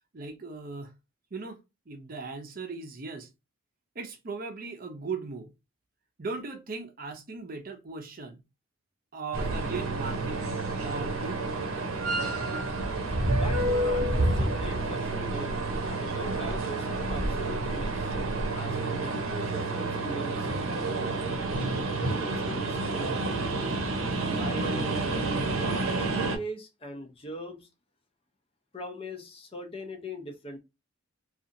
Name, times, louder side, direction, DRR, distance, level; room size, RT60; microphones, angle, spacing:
voice 1, 0.1-0.9 1.3-1.6 1.9-3.3 4.0-5.5 6.2-8.4 9.1-10.4 10.8-11.4 12.7-13.0, right 4 dB, 45° right, 0.6 m, -38 dB
sound 1, 9.3-26.4, right 2 dB, 90° right, 0.7 m, -29 dB
voice 2, 13.3-20.5 21.1-23.4 24.2-25.3 25.5-27.7 28.7-30.6, equal, 25° left, 0.5 m, -41 dB
2.7 x 2.4 x 2.5 m
head